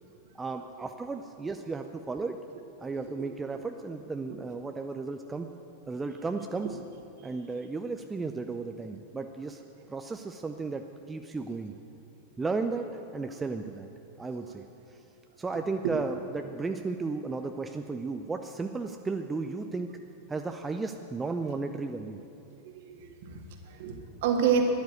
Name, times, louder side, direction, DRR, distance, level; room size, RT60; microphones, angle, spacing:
voice 1, 0.3-2.4 2.8-5.5 5.9-6.7 7.2-9.6 9.9-11.7 12.4-13.9 14.2-14.6 15.4-19.9 20.3-22.2, right 3 dB, 15° right, 6 dB, 0.6 m, -34 dB
voice 2, 22.6-24.6, right 8 dB, 50° right, 3 dB, 1.8 m, -29 dB
12.5 x 10.5 x 9.2 m, 2.8 s
figure-of-eight pair, 90°, 0 cm